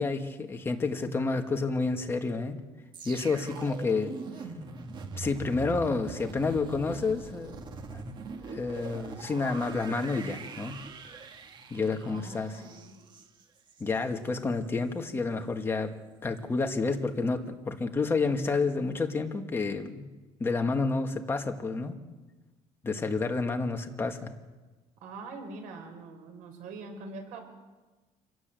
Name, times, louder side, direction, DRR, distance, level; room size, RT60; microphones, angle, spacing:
voice 1, 0.0-2.6 3.1-4.1 5.2-7.6 7.9-8.0 8.4-10.8 11.7-12.6 13.8-15.9 16.2-20.1 20.4-22.0 22.8-24.3, left 3 dB, 20° left, 4 dB, 1.9 m, -29 dB
sound 1, 2.9-14.0 14.4-14.6, right 4 dB, 35° right, 1.7 m, -42 dB
voice 2, 12.0-13.0 25.0-27.4, right 3 dB, 80° right, 4 dB, 5.8 m, -43 dB
27.0 x 17.5 x 7.8 m, 1.2 s
cardioid pair, 150°, 13 cm